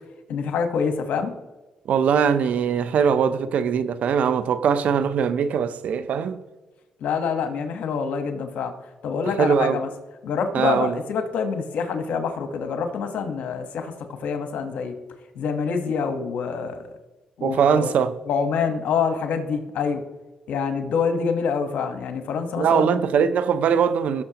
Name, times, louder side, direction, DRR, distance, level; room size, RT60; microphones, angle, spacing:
voice 1, 0.3-1.3 7.0-8.7 9.0-9.9 10.2-13.9 14.2-14.9 15.3-16.9 17.4-17.9 18.3-20.0 20.5-22.9, left 6 dB, 75° left, 1.2 m, -26 dB
voice 2, 1.9-6.4 9.4-9.8 10.5-11.0 17.4-18.1 22.6-24.2, right 7 dB, 70° right, 0.6 m, -21 dB
17.5 x 6.6 x 2.9 m
cardioid pair, 80°, 3 cm